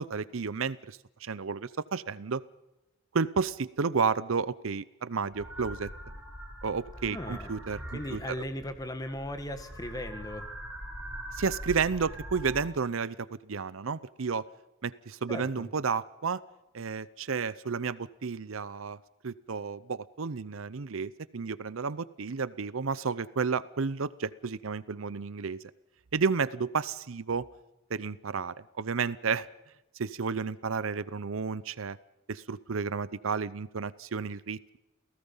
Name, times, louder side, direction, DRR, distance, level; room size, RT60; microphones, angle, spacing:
voice 1, 0.0-2.4 3.1-5.9 6.6-8.3 11.3-13.2 13.4-14.5 14.8-16.4 16.7-19.0 19.2-25.6 26.1-27.5 27.9-29.5 30.0-32.0 32.3-34.8, right 5 dB, 70° right, 18 dB, 0.6 m, -32 dB
sound 1, 5.3-12.6, equal, 5° right, 5.9 m, -43 dB
voice 2, 7.1-7.6 7.9-10.5 15.3-15.7, left 1 dB, 15° left, 8 dB, 1.7 m, -37 dB
28.5 x 17.5 x 5.6 m, 0.93 s
head